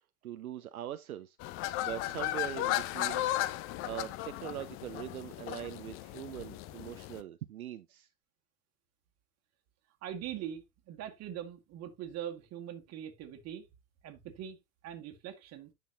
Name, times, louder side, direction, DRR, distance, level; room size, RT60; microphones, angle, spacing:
voice 1, 0.2-3.3 3.8-8.1, right 12 dB, 65° right, 0.8 m, -42 dB
sound 1, 1.4-7.2, left 15 dB, 30° left, 0.6 m, -35 dB
voice 2, 10.0-13.7 14.0-14.6 14.8-15.7, right 10 dB, 35° right, 1.9 m, -42 dB
9.9 x 6.4 x 2.7 m
figure-of-eight pair, 90°, 46 cm